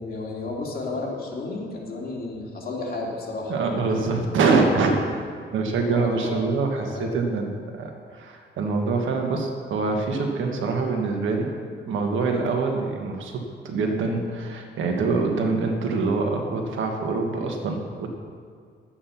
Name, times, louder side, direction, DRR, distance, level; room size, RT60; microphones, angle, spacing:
voice 1, 0.0-4.1 5.8-6.5 6.9-7.1 12.3-12.4, left 3 dB, 50° left, -3 dB, 2.7 m, -32 dB
voice 2, 3.5-5.2 5.5-11.5 11.9-18.1, right 4 dB, 85° right, 3 dB, 1.6 m, -25 dB
11.0 x 8.8 x 5.8 m, 2.1 s
cardioid pair, 95°, 20 cm